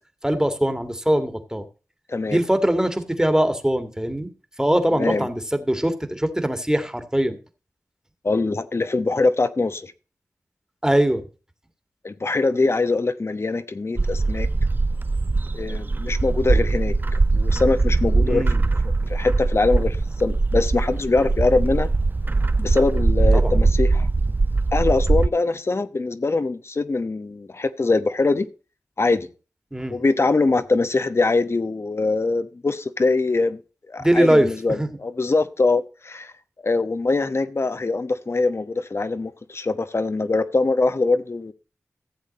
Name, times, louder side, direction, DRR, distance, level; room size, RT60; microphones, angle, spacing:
voice 1, 0.2-1.7 2.3-4.3 4.6-7.4 10.8-11.2 18.2-18.6 23.3-23.5 29.7-30.0 34.0-34.9, right 1 dB, 10° right, 1.9 m, -21 dB
voice 2, 2.1-2.4 5.0-5.3 8.2-9.9 12.0-14.5 15.5-18.4 19.1-21.9 22.6-24.1 24.7-28.5 29.0-29.3 29.9-33.6 33.9-36.3 36.6-41.5, left 3 dB, 50° left, 1.0 m, -23 dB
Bird, 14.0-25.3, right 3 dB, 35° right, 0.5 m, -21 dB
14.5 x 7.4 x 4.2 m
cardioid pair, 40°, 5 cm